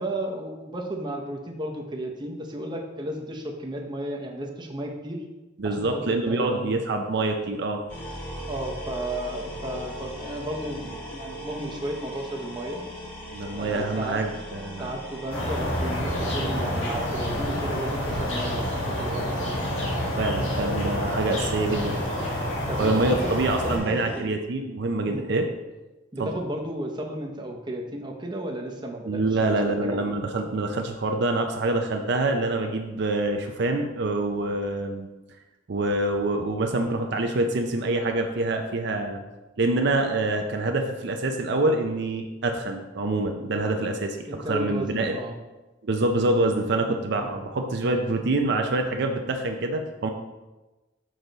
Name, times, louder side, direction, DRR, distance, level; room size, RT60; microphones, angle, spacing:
voice 1, 0.0-5.2 5.6-6.8 8.5-12.8 13.5-14.2 14.8-19.3 22.7-24.4 25.1-25.3 26.1-30.0 44.3-45.4 47.2-47.3, right 1 dB, 25° right, 1 dB, 0.8 m, -34 dB
voice 2, 5.6-7.8 13.3-14.9 20.2-22.0 22.8-25.5 26.2-26.3 29.1-35.1 35.7-39.2 39.6-44.2 44.5-45.2 45.8-50.1, right 2 dB, 60° right, 4 dB, 0.5 m, -26 dB
sound 1, 7.9-24.2, equal, 30° left, 1.3 m, -40 dB
sound 2, 15.3-23.8, equal, 85° left, 1.9 m, -28 dB
6.3 x 5.3 x 3.9 m, 1.1 s
head